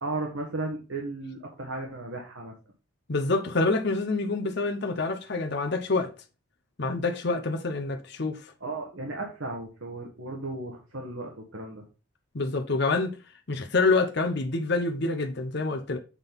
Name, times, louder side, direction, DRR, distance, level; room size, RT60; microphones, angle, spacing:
voice 1, 0.0-2.5 8.6-11.8, right 2 dB, 70° right, 1.5 m, -35 dB
voice 2, 3.1-6.1 6.8-8.5 12.3-13.2 13.5-16.0, left 3 dB, 50° left, 0.8 m, -27 dB
7.4 x 4.0 x 5.2 m
head